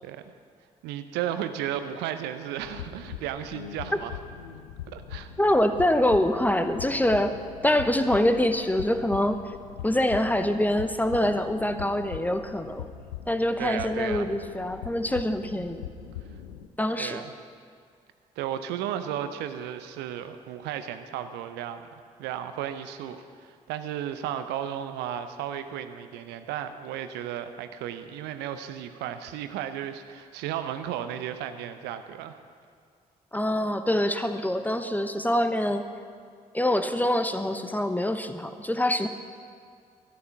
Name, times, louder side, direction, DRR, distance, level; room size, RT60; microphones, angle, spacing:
voice 1, 0.8-4.1 4.9-5.3 13.6-14.3 17.0-17.3 18.4-21.9 22.2-32.4, right 10 dB, 65° right, 10 dB, 0.7 m, -34 dB
sound 1, 2.6-16.7, left 9 dB, 80° left, 0.6 m, -41 dB
voice 2, 5.4-7.4 7.6-9.4 9.8-12.9 13.3-15.8 16.8-17.2 33.3-35.9 36.5-39.1, left 1 dB, 10° left, 9 dB, 1.0 m, -25 dB
13.0 x 11.0 x 5.8 m, 2.2 s
figure-of-eight pair, 40°, 19 cm